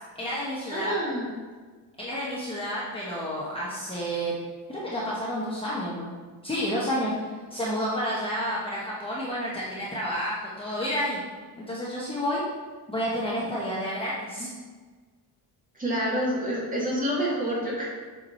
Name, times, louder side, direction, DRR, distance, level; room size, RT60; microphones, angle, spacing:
voice 1, 0.2-0.9 2.0-4.4 4.7-6.1 6.4-7.1 7.5-11.2 11.7-12.4 12.9-14.5, equal, 15° left, -7 dB, 1.0 m, -30 dB
voice 2, 0.7-1.3 15.7-17.9, equal, 20° right, -5 dB, 1.9 m, -28 dB
7.3 x 4.8 x 4.3 m, 1.4 s
cardioid pair, 170°, 41 cm